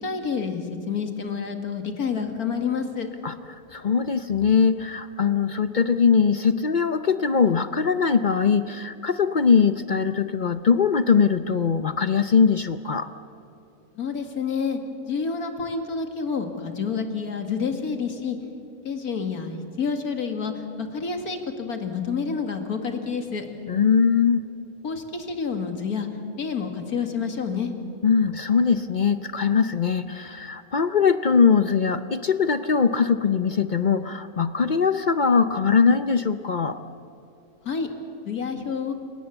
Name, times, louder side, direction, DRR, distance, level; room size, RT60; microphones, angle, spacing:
voice 1, 0.0-3.1 14.0-18.4 18.8-23.4 24.8-26.1 26.4-27.7 37.6-37.9 38.2-38.9, left 5 dB, 90° left, 6 dB, 2.5 m, -28 dB
voice 2, 3.2-13.1 23.7-24.4 28.0-36.8, left 6 dB, 50° left, 11 dB, 0.6 m, -21 dB
29.0 x 18.0 x 8.0 m, 2.8 s
omnidirectional pair, 1.5 m